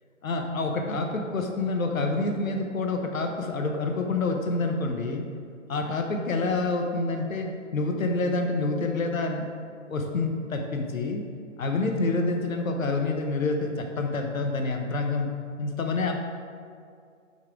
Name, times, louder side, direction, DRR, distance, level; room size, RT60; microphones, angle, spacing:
voice 1, 0.2-5.2 5.7-9.5 9.9-11.2 11.6-15.3 15.6-16.1, left 3 dB, 85° left, 3 dB, 1.0 m, -27 dB
5.6 x 3.7 x 4.6 m, 2.2 s
hypercardioid pair, 180°, 40 cm